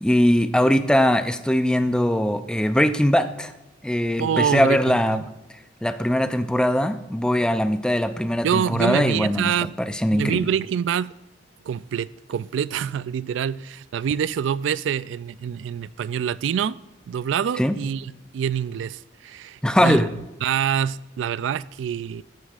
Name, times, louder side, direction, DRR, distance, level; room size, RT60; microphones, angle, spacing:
voice 1, 0.0-3.5 3.8-5.2 5.8-9.5 9.8-10.4 17.6-17.7 19.6-20.1, equal, 5° left, 0.4 m, -21 dB
voice 2, 4.2-5.2 8.4-9.8 10.1-11.1 11.6-16.8 17.1-22.2, right 8 dB, 70° right, 0.3 m, -26 dB
14.5 x 9.4 x 2.5 m
head